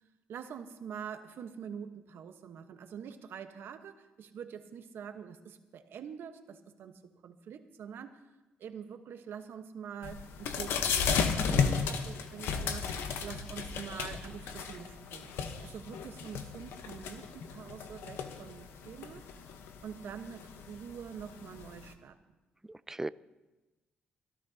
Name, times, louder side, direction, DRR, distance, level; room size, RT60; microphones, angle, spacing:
voice 1, 0.3-8.2 8.6-15.3 15.6-19.3 19.8-22.2, right 7 dB, 75° right, 7 dB, 1.2 m, -45 dB
sound 1, 10.0-21.9, left 6 dB, 85° left, 1.0 m, -35 dB
voice 2, 11.5-11.9 22.7-23.1, right 2 dB, 10° right, 16 dB, 0.4 m, -37 dB
24.0 x 14.0 x 2.9 m, 1.1 s
cardioid pair, 70°, 4 cm